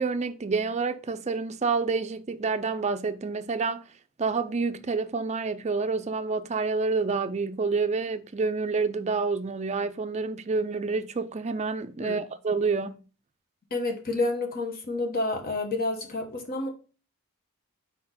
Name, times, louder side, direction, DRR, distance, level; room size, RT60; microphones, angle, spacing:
voice 1, 0.0-3.8 4.2-12.9, right 4 dB, 30° right, 0.5 m, -28 dB
voice 2, 13.7-16.7, left 2 dB, 45° left, 1.2 m, -29 dB
4.4 x 4.2 x 5.7 m
head